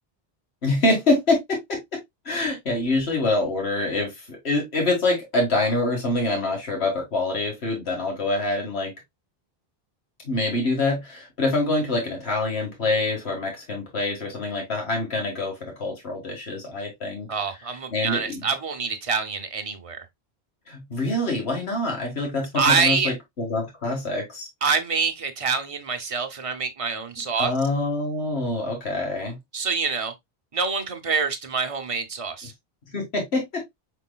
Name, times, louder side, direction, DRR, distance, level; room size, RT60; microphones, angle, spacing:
voice 1, 0.6-1.8 2.3-8.9 10.2-17.3 17.9-18.4 20.7-24.5 27.4-29.4 32.9-33.7, left 2 dB, 90° left, 2.0 m, -25 dB
voice 2, 17.3-20.1 22.6-23.1 24.6-27.5 29.5-30.1 30.5-32.5, right 5 dB, 35° right, 0.8 m, -26 dB
5.2 x 4.5 x 2.2 m
omnidirectional pair, 1.0 m